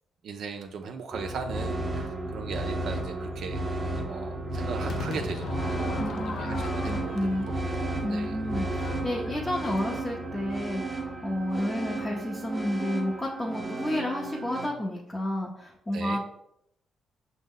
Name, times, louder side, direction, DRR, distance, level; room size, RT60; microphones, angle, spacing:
voice 1, 0.2-8.4 15.9-16.2, right 5 dB, 70° right, 4 dB, 0.3 m, -38 dB
sound 1, 1.1-14.7, right 2 dB, 25° right, 0.7 m, -33 dB
Crowd / Fireworks, 4.9-10.1, left 4 dB, 60° left, 0.4 m, -40 dB
voice 2, 6.0-7.5 8.0-16.2, left 1 dB, 25° left, -2 dB, 0.7 m, -31 dB
5.1 x 2.1 x 3.7 m, 0.77 s
supercardioid pair, 65°, 0 cm